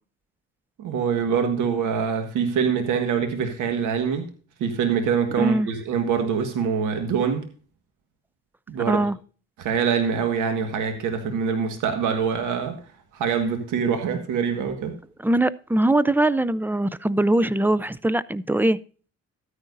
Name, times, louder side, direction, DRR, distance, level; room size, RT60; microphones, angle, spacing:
voice 1, 0.8-4.3 4.6-7.5 8.7-9.0 9.6-12.8 13.1-14.9, right 6 dB, 90° right, 1.7 m, -24 dB
voice 2, 5.4-5.7 8.9-9.2 14.5-14.6 15.2-18.8, right 1 dB, 5° right, 0.5 m, -22 dB
13.0 x 9.8 x 2.6 m
cardioid pair, 90°, 30 cm